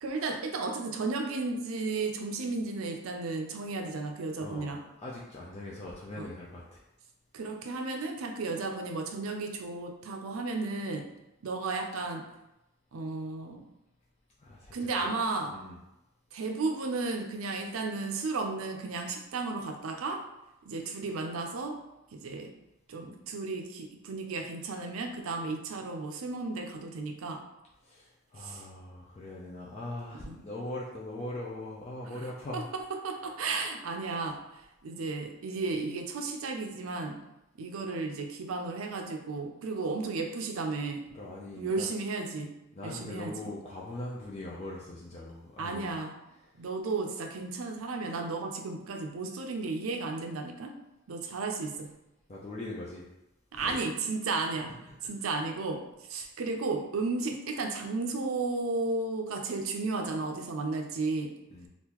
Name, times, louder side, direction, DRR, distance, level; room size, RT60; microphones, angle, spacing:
voice 1, 0.0-4.8 6.1-6.3 7.3-11.1 11.4-12.3 12.9-13.6 14.7-15.6 16.3-20.2 20.7-21.8 22.1-22.5 22.9-27.4 28.4-28.6 30.3-30.4 32.5-34.4 34.8-37.2 37.6-41.1 41.6-42.5 42.8-43.5 45.6-46.2 46.6-50.7 51.1-52.0 53.5-54.8 55.0-61.4, right 3 dB, 90° right, 4 dB, 0.5 m, -34 dB
voice 2, 4.4-4.7 5.0-6.8 14.4-14.8 15.0-15.1 15.5-15.8 27.8-32.7 41.1-41.9 42.7-45.9 52.3-53.1 53.5-53.8 54.9-55.0 61.5-61.7, left 1 dB, 30° left, -5 dB, 0.4 m, -41 dB
3.7 x 2.5 x 2.9 m, 0.91 s
head